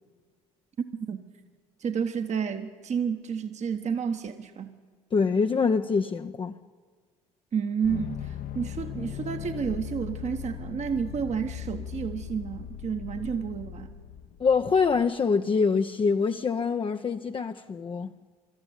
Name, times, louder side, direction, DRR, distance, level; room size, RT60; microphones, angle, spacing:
voice 1, 1.8-4.7 7.5-14.0, right 6 dB, 40° right, 1.2 m, -31 dB
voice 2, 5.1-6.6 14.4-18.1, left 5 dB, 30° left, 0.8 m, -25 dB
sound 1, 7.8-15.0, left 9 dB, 50° left, 1.1 m, -38 dB
23.0 x 13.0 x 9.4 m
hypercardioid pair, 60°, 18 cm